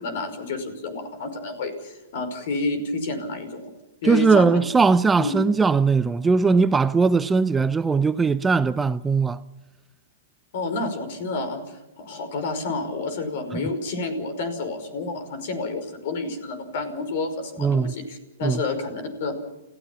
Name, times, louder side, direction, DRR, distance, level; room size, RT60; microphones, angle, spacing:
voice 1, 0.0-3.7 4.0-4.6 5.2-5.3 10.5-19.3, left 3 dB, 55° left, 5.5 m, -29 dB
voice 2, 4.0-9.4 13.5-13.6 17.6-17.9 18.4-18.6, right 4 dB, 10° right, 0.6 m, -20 dB
29.5 x 16.0 x 5.9 m
hypercardioid pair, 115°, 0 cm